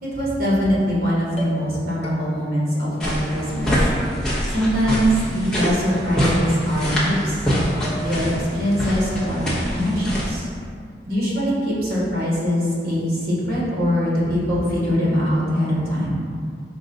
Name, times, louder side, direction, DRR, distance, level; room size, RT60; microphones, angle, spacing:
voice 1, 0.0-3.7 4.5-7.4 7.9-9.4 9.7-10.5 11.1-16.2, equal, 55° right, -6 dB, 1.2 m, -22 dB
sound 1, 0.7-1.0 1.4-1.8 2.0-2.6 3.1-3.7 4.0-4.7 5.0-5.5 5.9-6.4 6.8-7.5 7.8-8.4, equal, 35° left, 0.6 m, -40 dB
sound 2, 3.0-10.3, equal, 5° left, 0.8 m, -24 dB
5.2 x 2.2 x 3.8 m, 2.2 s
head